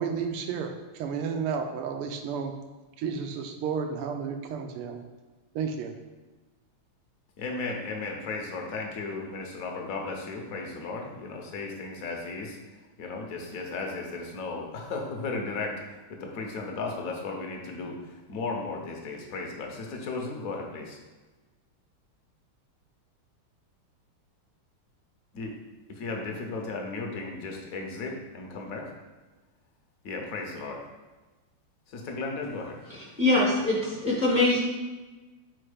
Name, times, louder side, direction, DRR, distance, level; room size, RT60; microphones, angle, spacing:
voice 1, 0.0-2.5 3.0-5.0 5.5-5.9, right 6 dB, 85° right, 5 dB, 1.6 m, -32 dB
voice 2, 7.4-12.6 13.0-15.7 16.1-18.0 18.3-21.0 25.3-25.5 26.0-28.8 30.0-30.8 31.9-32.8, left 3 dB, 55° left, 1 dB, 1.0 m, -35 dB
voice 3, 32.9-34.6, left 2 dB, 30° left, -5 dB, 0.8 m, -24 dB
4.4 x 4.4 x 5.0 m, 1.2 s
omnidirectional pair, 2.4 m